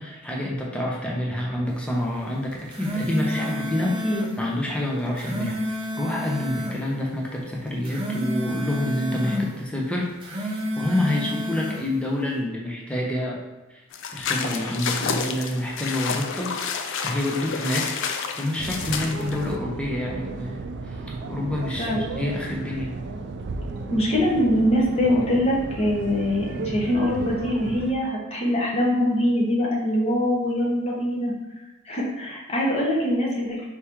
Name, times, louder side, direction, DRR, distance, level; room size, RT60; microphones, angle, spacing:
voice 1, 0.0-13.4 13.7-13.8 14.1-16.5 17.0-22.9, left 1 dB, 5° left, -3 dB, 0.6 m, -28 dB
sound 1, 2.5-4.3 5.0-6.8 7.7-9.5 10.1-11.8, equal, 25° right, 0.8 m, -30 dB
sound 2, 13.9-19.5, left 5 dB, 65° left, 0.4 m, -30 dB
sound 3, 18.6-27.9, right 3 dB, 55° right, 0.3 m, -34 dB
voice 2, 23.9-31.3 31.9-33.7, equal, 30° left, -4 dB, 1.1 m, -23 dB
4.5 x 2.9 x 3.5 m, 1.1 s
head